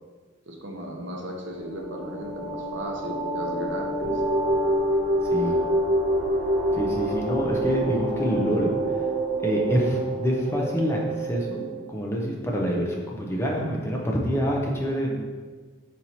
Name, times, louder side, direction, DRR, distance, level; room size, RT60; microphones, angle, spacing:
voice 1, 0.5-4.2 15.0-15.2, equal, 65° right, 0 dB, 0.7 m, -36 dB
sound 1, 1.5-11.8, right 1 dB, 80° right, 1.4 m, -27 dB
voice 2, 6.7-8.7 9.4-15.1, equal, 15° left, -2 dB, 0.5 m, -26 dB
4.4 x 4.2 x 2.7 m, 1.4 s
head